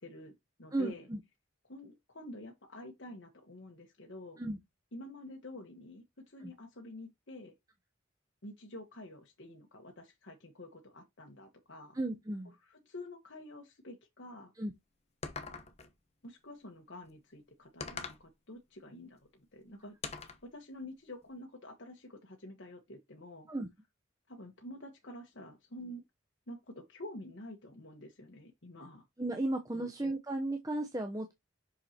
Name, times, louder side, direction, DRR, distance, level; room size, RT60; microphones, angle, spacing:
voice 1, 0.0-1.1 1.7-4.4 4.9-7.5 8.4-12.0 12.4-14.5 16.2-19.9 20.4-23.5 24.3-26.0 26.5-29.1 29.7-29.9, left 1 dB, 65° left, 1.4 m, -48 dB
voice 2, 0.7-1.2 4.4-4.6 6.4-6.5 11.9-12.5 14.6-14.7 23.5-23.7 29.2-31.3, right 2 dB, 15° right, 0.8 m, -35 dB
sound 1, 15.2-15.9 17.8-18.3 20.0-20.5, left 4 dB, 30° left, 0.9 m, -42 dB
6.5 x 5.5 x 2.9 m
head